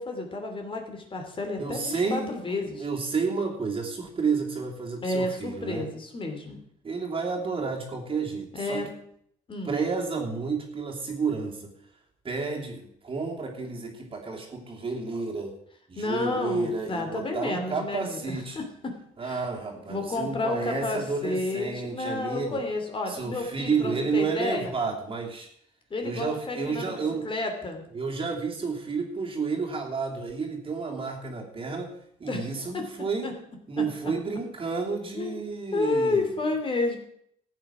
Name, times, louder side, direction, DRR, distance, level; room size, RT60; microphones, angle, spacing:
voice 1, 0.0-2.9 5.0-6.6 8.5-8.9 9.5-9.7 16.0-18.9 19.2-19.4 19.9-24.7 25.9-27.8 32.3-32.5 32.7-32.8 33.2-33.3 33.8-33.9 35.1-35.4 35.7-37.0, left 2 dB, 30° left, 4 dB, 2.9 m, -31 dB
voice 2, 1.6-2.3 2.7-5.9 6.8-8.9 9.6-11.7 12.2-15.5 15.9-18.6 19.2-22.6 23.1-25.5 26.0-27.3 27.9-31.9 32.2-33.3 33.7-36.3, right 4 dB, 30° right, 0 dB, 3.1 m, -31 dB
14.5 x 8.8 x 6.1 m, 0.70 s
cardioid pair, 110°, 17 cm